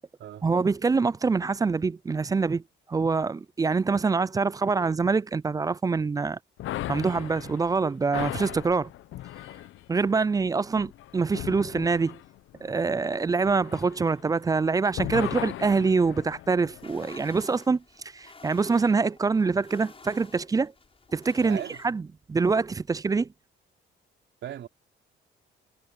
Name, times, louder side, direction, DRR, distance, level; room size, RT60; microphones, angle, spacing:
voice 1, 0.4-2.6 2.9-6.4 6.9-8.9 9.9-12.2 12.6-17.8 18.1-20.7 21.1-22.0 22.3-23.3, right 4 dB, 20° right, 0.3 m, -25 dB
sound 1, 6.6-14.6 14.9-17.3, left 14 dB, 80° left, 0.8 m, -38 dB
sound 2, 16.7-21.9, left 4 dB, 30° left, 7.5 m, -51 dB
voice 2, 21.4-22.0 24.4-24.7, right 11 dB, 70° right, 3.7 m, -38 dB
cardioid pair, 90°, 20 cm